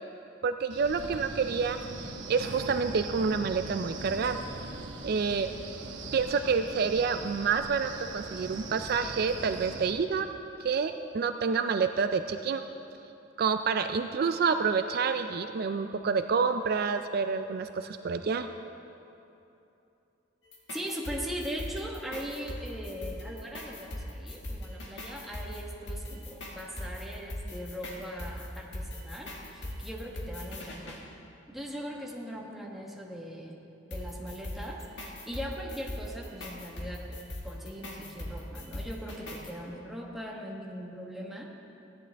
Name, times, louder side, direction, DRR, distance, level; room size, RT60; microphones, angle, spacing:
voice 1, 0.4-4.4 5.0-5.5 6.1-10.3 10.6-12.6 13.4-18.5, right 5 dB, 55° right, 8 dB, 0.4 m, -28 dB
Wind, 0.7-9.9, right 3 dB, 90° right, 1.0 m, -41 dB
sound 1, 20.4-31.0 33.9-39.5, left 1 dB, 70° left, 1.8 m, -40 dB
voice 2, 20.7-31.0 31.5-33.6 33.9-37.2 37.4-41.5, equal, ahead, -2 dB, 1.2 m, -40 dB
16.5 x 10.5 x 3.4 m, 2.9 s
head